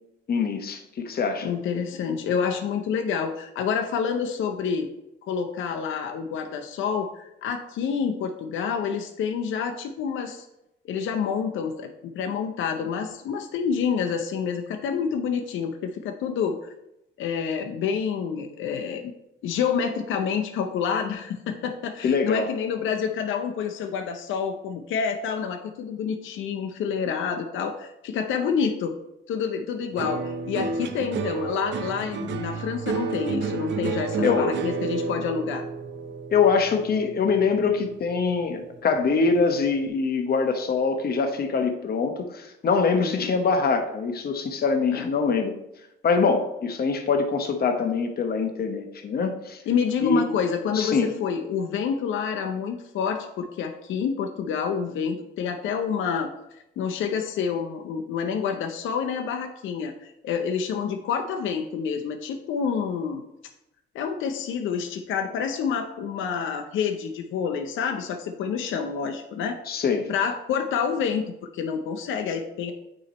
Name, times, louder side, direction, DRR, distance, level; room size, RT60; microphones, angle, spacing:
voice 1, 0.3-1.5 22.0-22.5 34.2-34.5 36.3-45.5 46.0-49.6 50.0-50.2 50.7-51.1 69.7-70.1, left 5 dB, 50° left, 5 dB, 1.0 m, -24 dB
voice 2, 1.4-4.9 5.3-10.5 10.8-16.6 17.2-19.1 19.4-29.0 29.3-35.6 43.0-43.3 44.9-45.1 49.7-56.3 56.8-63.2 63.9-69.6 70.1-72.7, left 6 dB, 80° left, 4 dB, 0.6 m, -28 dB
sound 1, 30.0-38.4 38.7-39.4, right 4 dB, 65° right, 0.6 m, -31 dB
8.8 x 3.0 x 4.2 m, 0.87 s
cardioid pair, 90°, 20 cm